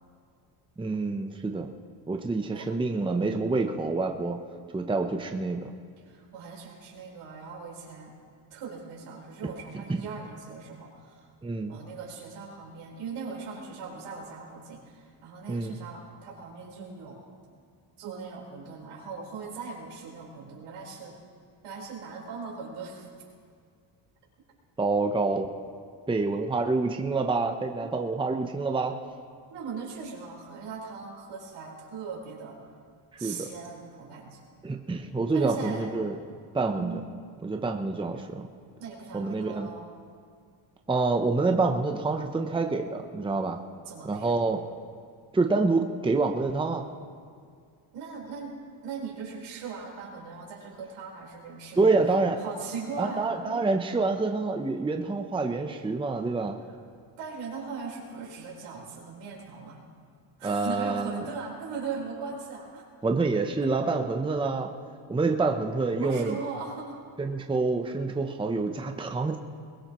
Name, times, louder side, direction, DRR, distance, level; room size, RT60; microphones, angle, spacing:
voice 1, 0.8-1.7 2.1-4.4 4.7-5.7 9.9-10.0 11.4-11.7 15.5-15.8 24.8-25.5 26.1-29.0 33.2-33.5 34.6-36.2 36.5-37.0 37.4-38.5 39.1-39.7 40.9-43.6 44.0-44.6 45.3-46.9 51.8-52.4 53.0-56.6 60.4-61.2 63.0-64.7 65.1-66.4 67.2-69.4, right 3 dB, 10° right, 4 dB, 0.8 m, -27 dB
voice 2, 6.1-8.1 8.5-11.3 11.7-17.2 18.0-21.2 21.6-23.1 27.8-27.9 29.5-32.8 33.2-34.4 35.3-35.8 36.8-37.0 38.8-39.9 43.9-44.4 47.9-48.5 48.8-53.6 57.2-59.9 60.4-62.9 65.9-67.0, right 5 dB, 80° right, -2 dB, 4.5 m, -39 dB
21.5 x 19.5 x 3.1 m, 2.2 s
cardioid pair, 115°, 49 cm